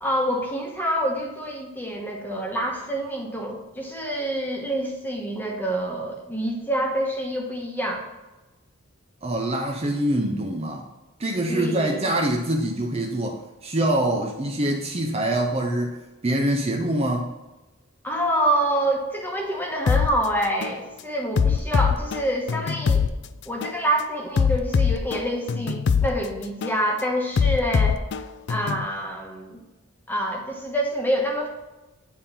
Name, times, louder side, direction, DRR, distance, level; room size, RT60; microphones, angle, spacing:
voice 1, 0.0-8.1 11.5-12.1 18.0-23.0 23.4-28.0 28.5-29.6 30.1-31.5, right 1 dB, 10° left, 0 dB, 1.1 m, -27 dB
voice 2, 9.2-10.9 11.2-16.0 16.2-17.3, right 1 dB, 30° right, 1 dB, 0.6 m, -24 dB
sound 1, 19.9-20.1 20.6-20.8 21.4-23.1 23.6-23.8 24.4-26.1 26.6-26.8 27.4-28.9, left 6 dB, 55° left, 0.4 m, -22 dB
8.8 x 3.8 x 4.2 m, 1.1 s
head